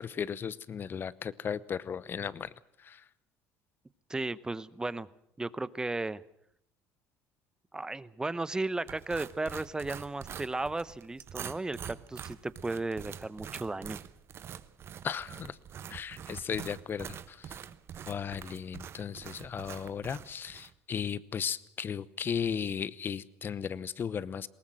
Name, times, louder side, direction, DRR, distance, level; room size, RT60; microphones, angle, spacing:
voice 1, 0.0-2.5 2.8-3.0 15.0-15.6 15.9-17.6 18.1-24.5, left 7 dB, 40° left, 19 dB, 0.9 m, -36 dB
voice 2, 4.1-5.1 5.4-6.2 7.7-14.0, right 2 dB, 10° right, 18 dB, 0.8 m, -35 dB
sound 1, 8.9-20.7, right 9 dB, 45° right, 1.0 m, -45 dB
20.5 x 18.5 x 7.6 m, 0.75 s
supercardioid pair, 95°, 6 cm